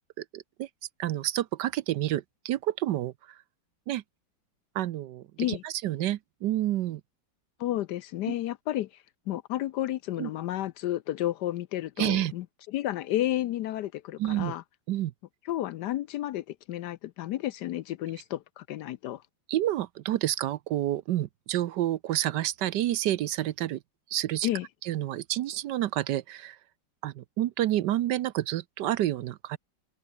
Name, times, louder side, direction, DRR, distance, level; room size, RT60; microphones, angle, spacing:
voice 1, 0.2-0.7 1.0-3.1 3.9-4.0 4.7-7.0 8.3-8.4 10.2-10.3 12.0-12.3 14.2-14.5 14.9-15.1 19.5-23.8 24.1-24.5 24.8-26.6 27.0-29.6, right 13 dB, 70° right, 1.2 m, -29 dB
voice 2, 7.6-8.9 9.3-14.6 15.5-19.2 24.4-24.7, left 14 dB, 70° left, 1.1 m, -31 dB
open air
omnidirectional pair, 2.1 m